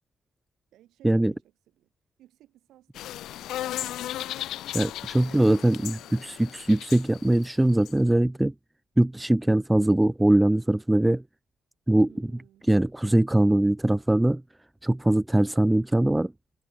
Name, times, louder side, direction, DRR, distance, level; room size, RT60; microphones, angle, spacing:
voice 1, 0.7-1.9 2.2-4.1 5.2-6.8 12.1-12.7, right 13 dB, 80° right, 5.7 m, -57 dB
sound 1, 3.0-7.9, left 13 dB, 75° left, 0.8 m, -36 dB
voice 2, 4.7-8.5 9.0-11.2 11.9-12.1 12.7-14.4 14.8-16.3, right 1 dB, 5° right, 0.4 m, -22 dB
cardioid pair, 165°, 0 cm